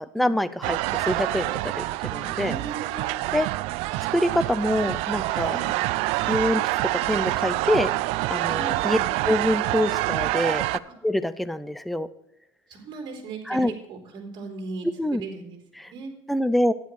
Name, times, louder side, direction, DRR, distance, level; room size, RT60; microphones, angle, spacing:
voice 1, 0.0-2.5 3.3-3.5 4.1-5.6 6.3-6.6 7.1-7.9 8.3-9.0 9.3-10.6 11.0-12.1 13.5-13.7 14.8-15.2 15.8-15.9 16.3-16.7, left 1 dB, ahead, 13 dB, 0.4 m, -25 dB
sound 1, 0.6-10.8, right 18 dB, 75° right, 0.4 m, -26 dB
voice 2, 2.3-3.2 5.5-5.7 8.6-9.1 10.9-11.0 12.7-16.1, right 4 dB, 45° right, 1 dB, 3.6 m, -38 dB
12.0 x 10.5 x 3.2 m, 0.82 s
cardioid pair, 140°, 10 cm